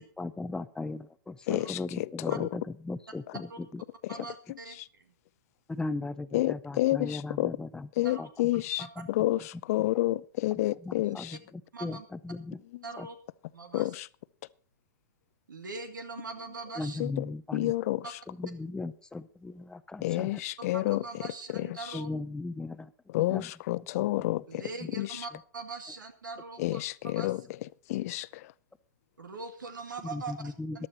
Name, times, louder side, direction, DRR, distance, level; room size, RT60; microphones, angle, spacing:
voice 1, 0.0-3.5 3.7-3.8 5.7-7.9 8.2-8.3 9.0-9.1 10.5-12.6 13.0-13.1 16.8-17.7 18.3-20.4 21.9-22.9 23.2-23.5 24.0-24.1 30.1-30.9, left 3 dB, 10° left, 0.6 m, -37 dB
voice 2, 1.5-2.5 4.0-4.1 6.3-7.5 8.0-8.8 9.1-11.4 13.7-14.1 17.0-17.2 17.5-18.0 20.0-21.0 21.5-21.7 23.1-24.6 25.0-25.2 26.6-27.4 27.9-28.3, left 17 dB, 50° left, 0.5 m, -29 dB
voice 3, 4.1-4.8 8.0-8.2 8.8-8.9 11.0-11.1 11.7-12.1 12.8-13.2 13.5-14.0 15.5-17.0 18.0-18.1 20.6-22.1 24.5-27.5 28.0-28.1 29.2-30.9, right 4 dB, 85° right, 2.3 m, -42 dB
14.5 x 11.5 x 4.3 m
hypercardioid pair, 120°, 10 cm